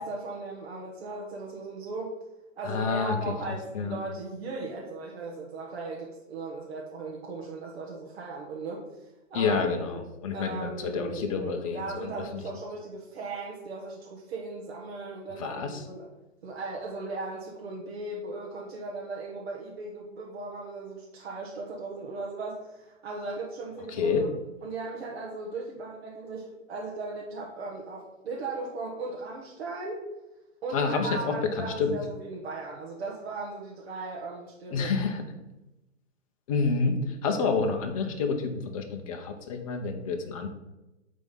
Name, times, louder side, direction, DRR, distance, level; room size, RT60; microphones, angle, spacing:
voice 1, 0.0-2.2 2.6-8.8 9.3-9.6 10.3-16.1 16.4-24.3 24.6-30.1 30.6-34.9, right 3 dB, 50° right, -3 dB, 1.4 m, -37 dB
voice 2, 2.6-3.3 3.7-4.0 9.3-12.4 15.4-15.8 23.9-24.3 30.7-32.0 34.7-35.2 36.5-40.5, left 5 dB, 25° left, 4 dB, 0.8 m, -28 dB
8.4 x 3.7 x 5.4 m, 0.99 s
hypercardioid pair, 150°, 38 cm